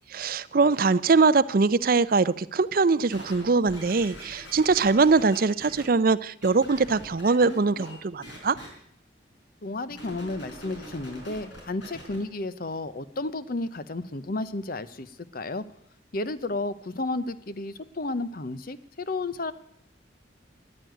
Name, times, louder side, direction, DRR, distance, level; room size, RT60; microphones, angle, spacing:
voice 1, 0.1-8.6, right 4 dB, 50° right, 14 dB, 0.5 m, -22 dB
sound 1, 3.1-5.8 6.4-7.9 8.2-8.7 9.9-12.2 12.8-12.9, equal, 85° left, 5.3 m, -43 dB
voice 2, 9.6-15.6 16.1-19.5, left 2 dB, 50° left, 14 dB, 0.8 m, -32 dB
14.0 x 9.9 x 9.1 m, 0.69 s
head